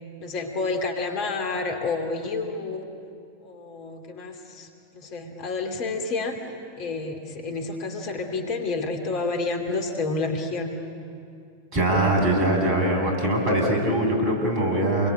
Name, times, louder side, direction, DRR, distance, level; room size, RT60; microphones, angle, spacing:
voice 1, 0.2-2.9 3.4-6.5 6.8-10.7, left 3 dB, 40° left, 4 dB, 3.0 m, -29 dB
voice 2, 11.7-15.1, right 1 dB, 40° right, 1 dB, 7.8 m, -22 dB
29.0 x 23.0 x 8.9 m, 2.5 s
figure-of-eight pair, 90°, 0 cm